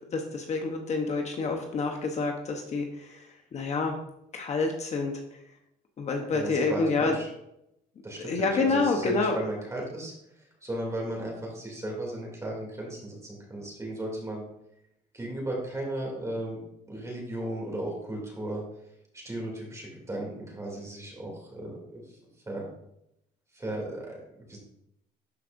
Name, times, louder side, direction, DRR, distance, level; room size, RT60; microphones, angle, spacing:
voice 1, 0.1-4.0 4.3-5.4 6.0-7.1 8.2-9.4, left 3 dB, 40° left, 3 dB, 0.9 m, -28 dB
voice 2, 6.3-7.3 8.0-14.4 15.1-16.6 16.9-18.6 19.1-22.2 22.4-22.6 23.5-24.6, right 1 dB, 15° right, -2 dB, 2.7 m, -35 dB
12.0 x 4.8 x 2.6 m, 0.80 s
cardioid pair, 110°, 17 cm